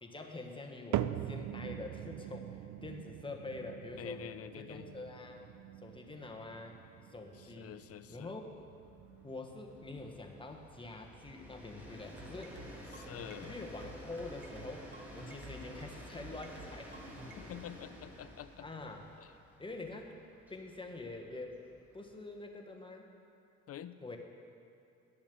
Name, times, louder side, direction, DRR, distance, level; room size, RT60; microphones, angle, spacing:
voice 1, 0.0-4.3 4.5-5.5 5.8-6.8 7.1-7.8 8.1-8.5 9.2-12.6 13.4-16.9 18.6-19.1 19.6-20.2 20.5-21.6 21.9-23.1 24.0-24.2, left 2 dB, 15° left, 2 dB, 1.3 m, -45 dB
sound 1, 0.9-17.2 17.6-18.1 18.7-18.8 19.6-19.7, right 12 dB, 75° right, 0.5 m, -45 dB
voice 2, 4.0-4.9 7.6-8.3 12.9-13.6 17.4-18.6 23.7-24.0, left 10 dB, 50° left, 13 dB, 0.5 m, -47 dB
Train, 5.1-22.4, equal, 5° right, 2.4 m, -52 dB
sound 2, 12.2-17.4, right 2 dB, 35° right, 1.3 m, -52 dB
10.5 x 7.1 x 6.8 m, 2.6 s
cardioid pair, 90°, 30 cm